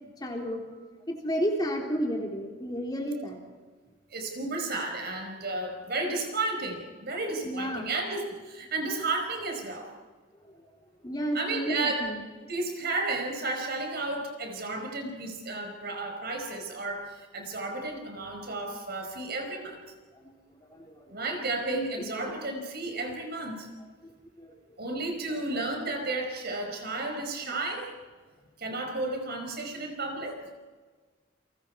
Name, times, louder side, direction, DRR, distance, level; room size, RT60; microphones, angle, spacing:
voice 1, 0.2-0.6 1.1-3.4 7.5-7.9 11.0-12.2 20.7-21.0 22.0-22.3 24.0-24.1 24.4-24.5, equal, 20° left, 0 dB, 3.8 m, -31 dB
voice 2, 4.1-9.9 11.3-12.1 12.5-19.8 21.1-23.7 24.8-27.9 28.6-30.5, right 2 dB, 55° right, 3 dB, 5.0 m, -33 dB
30.0 x 23.0 x 4.8 m, 1.4 s
head